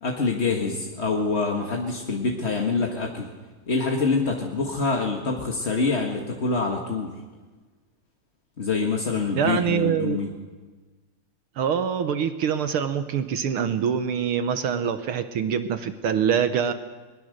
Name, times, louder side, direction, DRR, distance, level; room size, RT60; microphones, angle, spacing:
voice 1, 0.0-3.3 3.7-7.1 8.6-10.3, left 4 dB, 30° left, 1 dB, 1.2 m, -25 dB
voice 2, 9.4-10.2 11.6-16.7, right 7 dB, 65° right, 10 dB, 1.4 m, -24 dB
21.5 x 21.5 x 6.6 m, 1.3 s
omnidirectional pair, 3.4 m